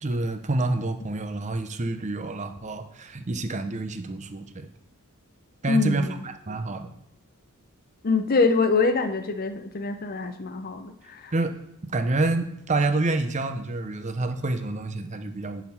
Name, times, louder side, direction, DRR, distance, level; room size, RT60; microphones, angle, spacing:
voice 1, 0.0-4.7 5.6-6.9 11.3-11.5 11.9-15.6, right 2 dB, 35° right, 8 dB, 0.6 m, -28 dB
voice 2, 5.7-6.2 8.0-11.3, left 4 dB, 45° left, 8 dB, 0.6 m, -24 dB
10.5 x 4.0 x 4.3 m, 0.84 s
head